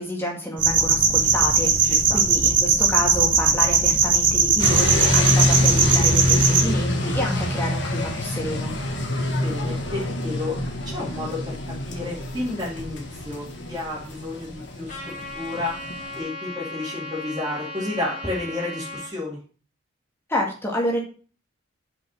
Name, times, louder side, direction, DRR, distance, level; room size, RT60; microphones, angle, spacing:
voice 1, 0.0-8.7 20.3-21.0, left 1 dB, 10° left, -1 dB, 1.9 m, -29 dB
sound 1, 0.6-6.6, right 5 dB, 40° right, 1.4 m, -19 dB
voice 2, 1.8-2.2 9.4-10.6 10.8-11.5 11.8-15.7 16.1-19.4, left 2 dB, 20° right, -8 dB, 2.4 m, -31 dB
sound 2, 4.6-16.2, left 1 dB, 60° left, 1.5 m, -26 dB
Trumpet, 14.9-19.1, left 2 dB, 35° left, 2.4 m, -36 dB
5.6 x 5.5 x 6.1 m, 0.39 s
head